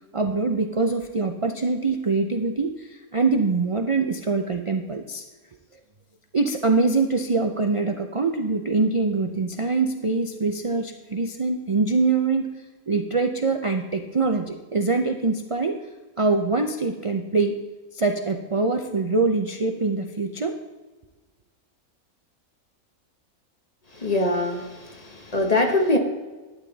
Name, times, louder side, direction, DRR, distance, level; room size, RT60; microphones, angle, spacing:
voice 1, 0.1-5.2 5.7-5.8 6.3-15.8 16.2-17.6 17.9-20.6, right 3 dB, 55° right, 4 dB, 0.3 m, -24 dB
voice 2, 23.9-26.0, left 2 dB, 30° left, 4 dB, 1.1 m, -23 dB
12.0 x 9.0 x 4.0 m, 1.3 s
omnidirectional pair, 1.5 m